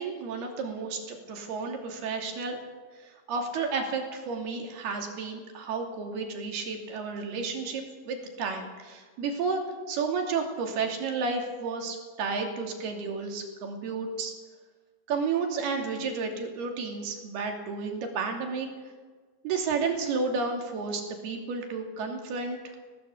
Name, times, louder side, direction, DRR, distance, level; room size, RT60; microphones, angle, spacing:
voice 1, 0.0-2.6 3.0-9.6 9.9-14.3 15.1-18.7 19.4-22.6, right 4 dB, 85° right, 3 dB, 4.7 m, -32 dB
19.5 x 18.5 x 8.3 m, 1.4 s
omnidirectional pair, 4.4 m